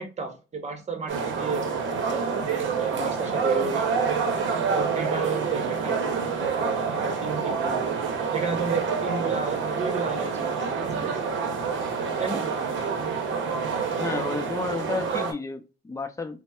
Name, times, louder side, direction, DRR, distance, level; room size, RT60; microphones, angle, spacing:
voice 1, 0.0-1.6 2.1-3.9 4.6-7.9 8.3-11.2 12.2-12.4, right 4 dB, 35° right, 0.9 m, -32 dB
sound 1, 1.1-15.3, right 5 dB, 70° right, 0.7 m, -27 dB
voice 2, 14.0-16.4, left 4 dB, 15° left, 0.5 m, -32 dB
4.1 x 2.0 x 2.3 m
cardioid pair, 90°, 20 cm